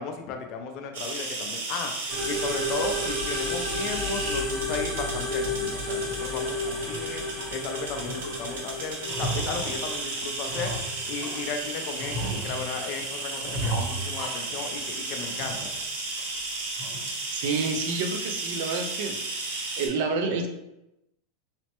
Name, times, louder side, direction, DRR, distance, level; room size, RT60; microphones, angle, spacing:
voice 1, 0.0-10.7 11.1-15.7, left 5 dB, 40° left, 5 dB, 0.4 m, -35 dB
sound 1, 0.9-19.9, right 3 dB, 85° right, 0.8 m, -34 dB
sound 2, 2.1-15.8, left 1 dB, ahead, 0.9 m, -34 dB
sound 3, 5.4-5.6 6.1-6.2 6.6-7.5 7.9-8.6 8.8-11.5 12.0-12.9 13.4-14.9 15.2-15.8 16.2-16.3 16.8-17.2, right 1 dB, 35° right, 0.9 m, -35 dB
voice 2, 17.3-19.2 19.8-20.5, right 4 dB, 55° right, 5 dB, 0.4 m, -28 dB
3.1 x 2.1 x 2.9 m, 0.88 s
supercardioid pair, 165°, 0 cm